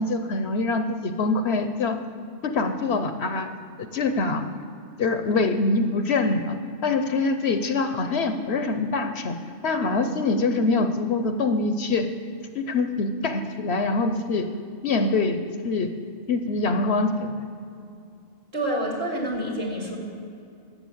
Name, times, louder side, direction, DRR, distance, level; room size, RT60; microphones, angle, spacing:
voice 1, 0.0-2.0 2.4-3.5 3.8-4.5 5.0-6.6 6.8-9.4 9.6-12.1 12.5-14.5 14.8-15.4 15.6-15.9 16.3-17.5, left 3 dB, 60° left, 8 dB, 0.9 m, -24 dB
voice 2, 18.5-20.0, right 1 dB, 55° right, -1 dB, 3.0 m, -27 dB
12.0 x 7.8 x 7.9 m, 2.5 s
omnidirectional pair, 1.3 m